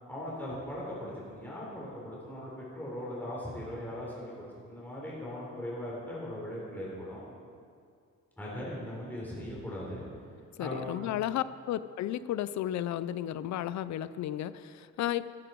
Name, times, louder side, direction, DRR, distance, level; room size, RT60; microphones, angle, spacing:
voice 1, 0.1-7.2 8.4-10.0 10.6-11.1, left 1 dB, 5° left, -6 dB, 3.9 m, -39 dB
voice 2, 10.6-15.3, left 12 dB, 70° left, 15 dB, 0.6 m, -33 dB
14.5 x 14.0 x 4.6 m, 2.3 s
cardioid pair, 150°, 29 cm